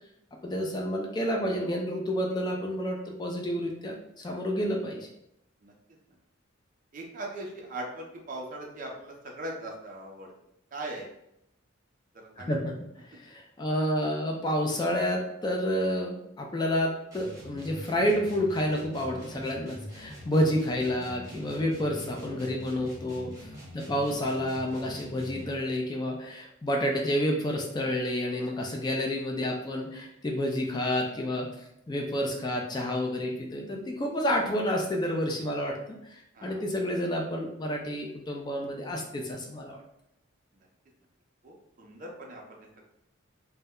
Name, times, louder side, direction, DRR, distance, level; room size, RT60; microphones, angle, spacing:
voice 1, 0.4-5.1 12.5-12.7 13.1-23.3 23.7-31.5 31.9-39.8, equal, 20° left, 1 dB, 0.3 m, -29 dB
voice 2, 6.9-10.3 10.7-11.1 12.1-12.6 20.2-20.3 21.9-22.3 23.5-23.8 28.4-28.5 36.3-36.6 40.5-40.7 41.4-42.9, right 1 dB, 40° right, 0 dB, 0.5 m, -40 dB
sound 1, 17.1-25.6, equal, 15° right, 0.8 m, -44 dB
2.1 x 2.1 x 3.5 m, 0.79 s
head